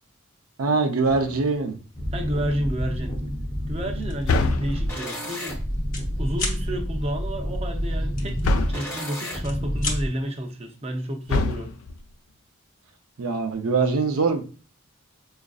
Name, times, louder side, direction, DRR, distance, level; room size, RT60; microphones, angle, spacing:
voice 1, 0.6-1.8 13.2-14.4, right 4 dB, 80° right, 0.5 m, -23 dB
sound 1, 1.1-1.7 4.3-5.2 8.4-9.1 11.3-12.1, left 2 dB, 75° left, 0.4 m, -26 dB
sound 2, 1.9-10.1, equal, 10° left, 0.7 m, -29 dB
voice 2, 2.1-3.1 3.7-5.6 6.2-11.7, equal, 30° right, 0.6 m, -31 dB
sound 3, 4.0-4.3 4.7-4.9 5.2-6.1 6.3-6.6 8.2-9.0 9.3-10.0, left 3 dB, 40° left, 1.0 m, -32 dB
4.9 x 2.5 x 2.3 m
head